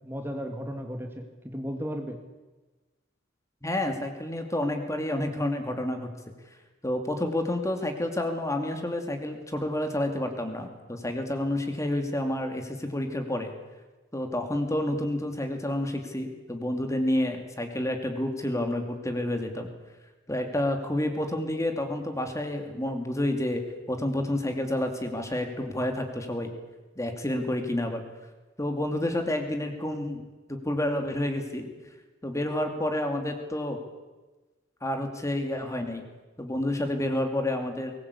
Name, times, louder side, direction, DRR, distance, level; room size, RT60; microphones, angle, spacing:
voice 1, 0.0-2.2, equal, 10° right, 4 dB, 2.1 m, -35 dB
voice 2, 3.6-6.1 6.8-13.5 14.1-19.7 20.3-26.5 27.0-28.0 28.6-31.7 32.2-33.8 34.8-36.0 36.4-37.9, left 1 dB, 15° left, 5 dB, 2.5 m, -29 dB
22.0 x 19.5 x 8.4 m, 1.2 s
head